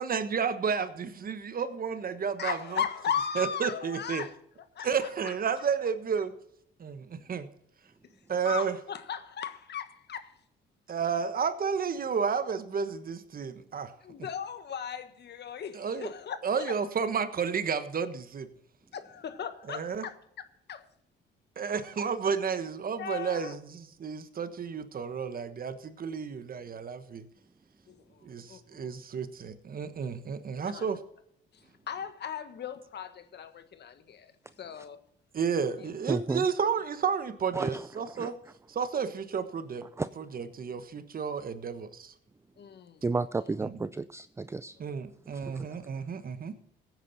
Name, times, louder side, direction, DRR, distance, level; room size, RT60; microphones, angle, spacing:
voice 1, 0.0-2.8 3.4-4.2 4.8-6.3 6.8-7.5 8.3-8.7 10.9-13.9 15.7-16.1 16.4-18.5 19.7-20.0 21.6-27.3 28.2-31.0 35.3-38.4 38.7-39.8 40.2-42.1 43.6-43.7 44.8-46.5, right 6 dB, 45° right, 1.3 m, -31 dB
voice 2, 2.4-4.4 4.7-5.6 8.0-8.1 8.4-10.4 14.0-16.8 18.9-20.9 23.0-23.6 27.9-29.0 30.6-30.9 31.5-34.3 34.6-35.0 35.8-35.9 42.6-43.0 43.4-43.5 44.8-44.9, left 8 dB, 60° left, 1.5 m, -37 dB
voice 3, 36.1-36.4 37.5-38.3 40.0-40.1 43.0-44.8 45.4-45.8, right 3 dB, 15° right, 0.4 m, -32 dB
16.0 x 9.2 x 4.2 m
cardioid pair, 90°, 20 cm